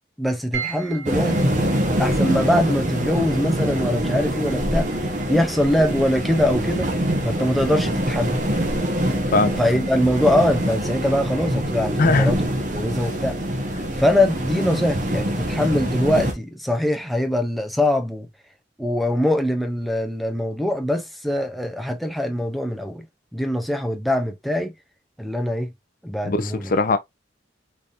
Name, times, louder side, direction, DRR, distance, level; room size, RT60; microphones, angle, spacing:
voice 1, 0.2-1.5 2.0-4.9 5.3-6.9 7.2-8.4 9.6-12.4 12.7-13.4 14.0-18.3 18.8-23.1 23.3-24.7 25.2-25.7 26.0-26.7, left 1 dB, ahead, 0.5 m, -22 dB
sound 1, 0.5-15.0, right 7 dB, 70° right, 1.8 m, -43 dB
sound 2, 1.1-16.3, right 1 dB, 40° right, 1.0 m, -24 dB
voice 2, 9.3-9.8 12.0-12.3 26.2-27.0, left 3 dB, 45° left, 0.5 m, -20 dB
3.9 x 3.4 x 2.5 m
head